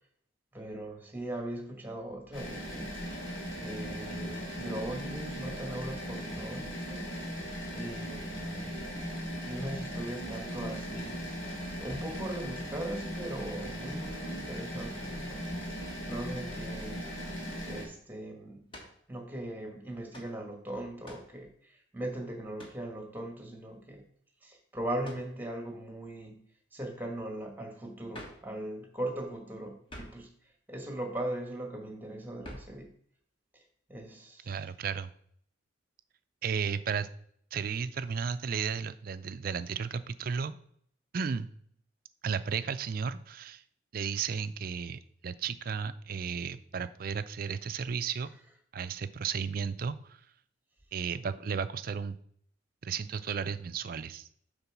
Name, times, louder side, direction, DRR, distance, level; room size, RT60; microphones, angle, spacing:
voice 1, 0.5-2.9 3.6-7.2 7.7-8.7 9.4-11.2 11.8-15.4 16.0-17.1 17.6-18.6 19.1-24.0 24.4-26.4 26.7-30.3 30.7-32.9 33.5-33.6 33.9-34.5, right 1 dB, 10° right, 3 dB, 1.3 m, -39 dB
sound 1, 2.3-17.9, equal, 85° left, 2.5 m, -38 dB
sound 2, 18.7-19.0 20.1-20.4 21.0-21.4 22.6-22.9 25.0-25.3 28.1-28.5 29.9-30.3 32.4-32.8, equal, 25° left, 1.3 m, -47 dB
voice 2, 34.5-35.1 36.4-37.1 37.5-40.5 41.1-41.5 42.2-43.6 43.9-48.3 48.7-50.2 50.9-52.2 52.8-54.3, right 6 dB, 50° right, 12 dB, 0.4 m, -34 dB
6.8 x 4.0 x 5.9 m, 0.63 s
head